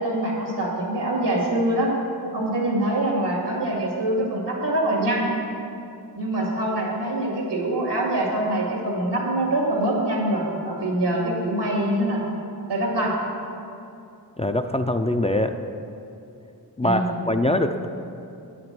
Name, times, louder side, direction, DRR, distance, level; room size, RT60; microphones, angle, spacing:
voice 1, 0.0-1.9 2.3-5.3 6.2-12.2 12.7-13.2 16.8-17.1, right 1 dB, 90° right, -2 dB, 2.2 m, -24 dB
voice 2, 14.4-15.5 16.8-17.0 17.3-17.9, left 1 dB, 15° left, 6 dB, 0.3 m, -22 dB
8.6 x 5.9 x 7.6 m, 2.7 s
wide cardioid pair, 80°, 40 cm